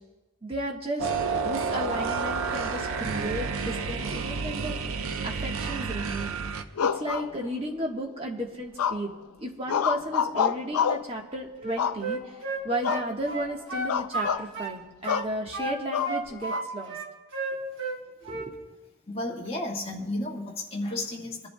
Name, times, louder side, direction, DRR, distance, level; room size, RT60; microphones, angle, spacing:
voice 1, 0.4-1.1 1.4-4.8 5.2-6.4 6.8-9.1 9.4-12.2 12.6-17.0 18.2-18.6, right 1 dB, 25° right, 0 dB, 1.2 m, -34 dB
sound 1, 1.0-6.6, right 4 dB, 75° right, 0.6 m, -30 dB
sound 2, 6.8-7.8 8.8-9.2 9.7-11.1 11.8-12.4 12.8-13.1 13.4-13.5 13.9-14.5 15.1-15.3 15.9-16.6, left 8 dB, 90° left, 0.4 m, -28 dB
Wind instrument woodwind instrument, 11.6-14.8 15.0-16.6 16.9-18.0 18.2-18.5, right 2 dB, 55° right, 1.2 m, -32 dB
voice 2, 19.1-21.5, left 1 dB, 25° left, -2 dB, 1.6 m, -32 dB
28.0 x 11.0 x 2.2 m, 1.2 s
head